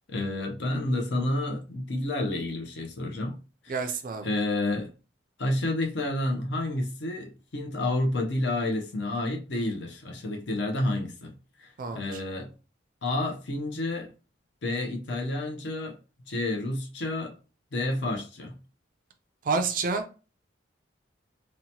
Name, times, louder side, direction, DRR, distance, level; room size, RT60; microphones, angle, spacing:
voice 1, 0.1-3.3 3.6-3.8 4.2-4.9 5.4-12.5 13.0-14.1 14.6-16.0 16.3-17.3 17.7-18.6, left 2 dB, 60° left, 0.6 m, -30 dB
voice 2, 3.7-4.3 11.8-12.2 19.4-20.1, right 4 dB, 45° right, 0.3 m, -29 dB
2.8 x 2.1 x 2.8 m
head